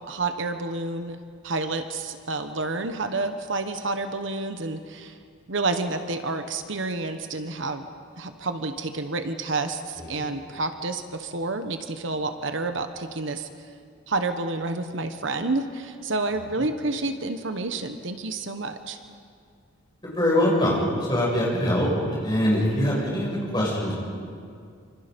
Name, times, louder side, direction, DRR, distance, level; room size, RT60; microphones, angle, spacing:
voice 1, 0.0-5.2 5.5-7.9 8.2-13.5 14.1-19.0, right 3 dB, 65° right, 8 dB, 1.1 m, -29 dB
voice 2, 20.0-24.1, left 1 dB, 20° left, -4 dB, 6.7 m, -23 dB
27.0 x 25.5 x 5.3 m, 2.2 s
head